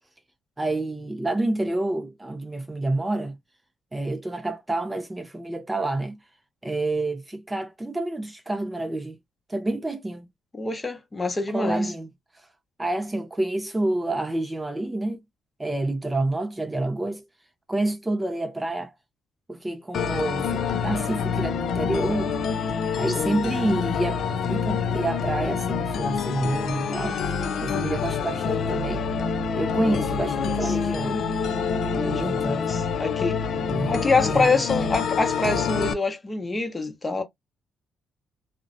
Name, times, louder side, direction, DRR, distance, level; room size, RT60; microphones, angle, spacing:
voice 1, 0.6-3.4 3.9-6.2 6.6-9.2 9.5-10.3 11.5-12.1 12.4-12.5 12.8-15.2 15.6-17.2 17.7-18.9 19.5-22.4 23.0-27.2 27.6-29.0 29.6-31.3 32.0-32.6 33.5-34.6, right 2 dB, 15° right, 0.4 m, -28 dB
voice 2, 10.5-11.9 23.1-23.4 29.8-30.8 31.9-33.4 33.9-37.2, left 3 dB, 25° left, 0.7 m, -26 dB
sound 1, 19.9-35.9, left 6 dB, 65° left, 0.4 m, -27 dB
2.5 x 2.0 x 2.5 m
cardioid pair, 75°, 0 cm